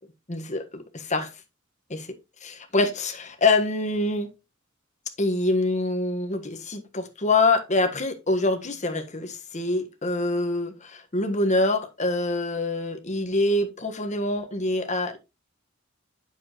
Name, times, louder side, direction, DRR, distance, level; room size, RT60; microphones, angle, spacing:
voice 1, 0.3-1.3 1.9-2.1 2.4-4.3 5.2-15.2, left 2 dB, 35° left, 1.4 m, -25 dB
9.0 x 7.1 x 3.0 m
head